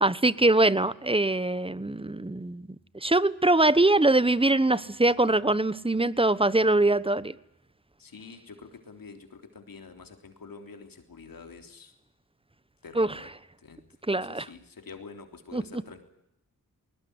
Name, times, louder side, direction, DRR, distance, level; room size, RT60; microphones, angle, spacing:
voice 1, 0.0-2.7 3.0-7.3 13.0-13.1 14.1-14.4 15.5-15.6, right 2 dB, 15° right, 1.1 m, -23 dB
voice 2, 8.0-11.9 12.8-13.3 13.6-13.8 14.1-16.0, left 4 dB, 70° left, 3.5 m, -47 dB
20.0 x 20.0 x 9.7 m
cardioid pair, 50°, 36 cm